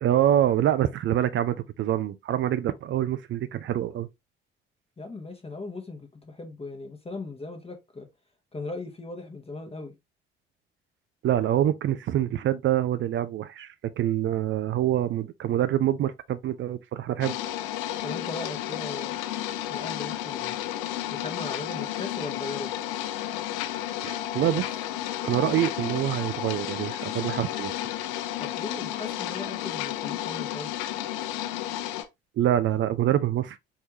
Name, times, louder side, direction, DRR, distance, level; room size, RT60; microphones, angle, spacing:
voice 1, 0.0-4.1 11.2-17.4 24.0-24.7 25.2-28.1 32.4-33.6, right 11 dB, 40° right, 0.5 m, -26 dB
voice 2, 5.0-8.1 8.5-9.9 18.0-19.2 19.7-20.6 21.1-22.7 28.4-30.7, left 2 dB, 20° left, 1.1 m, -38 dB
sound 1, 17.2-32.0, left 12 dB, 65° left, 0.8 m, -32 dB
4.6 x 3.3 x 2.9 m
figure-of-eight pair, 50°, 31 cm